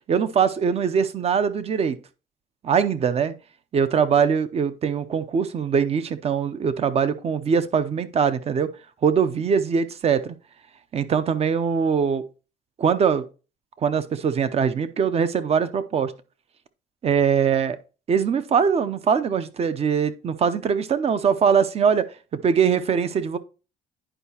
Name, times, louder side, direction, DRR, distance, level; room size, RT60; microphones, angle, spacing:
voice 1, 0.1-2.0 2.6-3.3 3.7-8.7 9.0-10.3 10.9-12.2 12.8-13.2 13.8-16.1 17.0-17.8 18.1-22.1 22.4-23.4, right 6 dB, 35° right, 0.6 m, -22 dB
10.0 x 4.7 x 2.8 m
cardioid pair, 110°, 17 cm